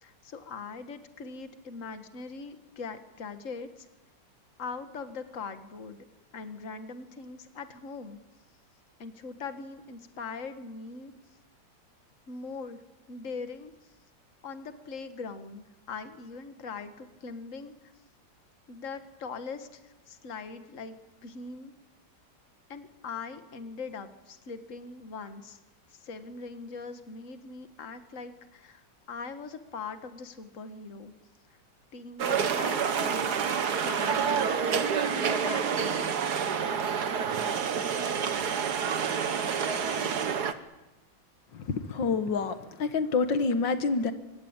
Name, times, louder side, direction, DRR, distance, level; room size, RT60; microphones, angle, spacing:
voice 1, 0.0-3.9 4.6-6.0 6.3-8.2 9.0-11.1 12.3-12.8 13.1-13.7 14.4-17.7 18.7-21.0 21.2-21.7 22.7-25.6 25.9-31.1 31.9-33.4 33.8-36.1, left 4 dB, 45° left, 9 dB, 1.9 m, -41 dB
sound 1, 32.2-40.5, right 6 dB, 60° right, 1.8 m, -28 dB
voice 2, 41.5-44.1, left 4 dB, 85° left, 9 dB, 2.1 m, -28 dB
25.0 x 23.0 x 8.9 m, 1.1 s
omnidirectional pair, 2.0 m